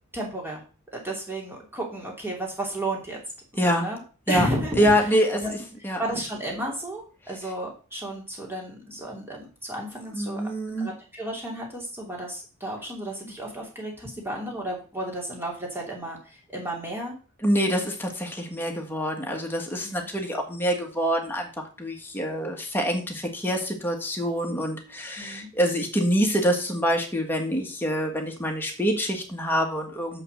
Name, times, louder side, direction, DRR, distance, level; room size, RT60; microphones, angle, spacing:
voice 1, 0.1-0.6 0.9-3.2 3.6-4.0 4.3-5.1 5.4-5.5 6.0-10.4 10.8-17.1 19.8-20.1 25.2-25.5, right 1 dB, 10° right, -1 dB, 2.7 m, -33 dB
voice 2, 3.6-3.9 4.3-4.5 4.8-5.4 5.8-6.0 10.1-10.9 17.4-30.2, equal, 10° left, 1 dB, 1.6 m, -25 dB
6.8 x 5.7 x 6.6 m, 0.37 s
head